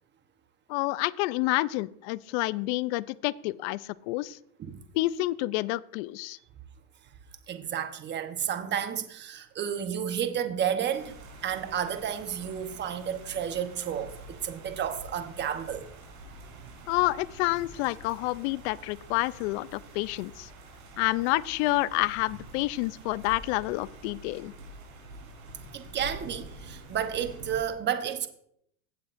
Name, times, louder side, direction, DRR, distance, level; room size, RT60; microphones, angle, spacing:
voice 1, 0.7-4.4 4.9-6.4 16.9-20.5 21.0-24.5, left 19 dB, 55° left, 0.4 m, -29 dB
voice 2, 7.5-11.1 11.4-15.8 25.7-28.3, right 9 dB, 25° right, 1.0 m, -31 dB
sound 1, 10.9-27.6, right 1 dB, 90° right, 4.4 m, -47 dB
16.5 x 7.3 x 2.6 m
supercardioid pair, 120°, 42 cm